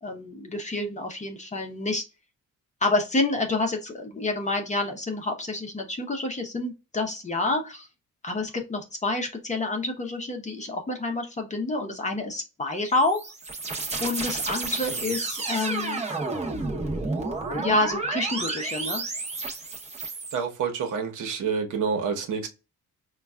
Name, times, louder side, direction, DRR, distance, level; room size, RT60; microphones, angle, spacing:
voice 1, 0.0-2.0 2.8-7.9 8.2-13.3 14.0-16.0 17.5-19.0, left 2 dB, 20° left, 0.7 m, -28 dB
sound 1, 12.7-20.3, right 3 dB, 20° right, 0.8 m, -31 dB
voice 2, 20.3-22.5, right 6 dB, 70° right, 1.0 m, -28 dB
5.2 x 2.3 x 2.3 m
wide cardioid pair, 170°, 32 cm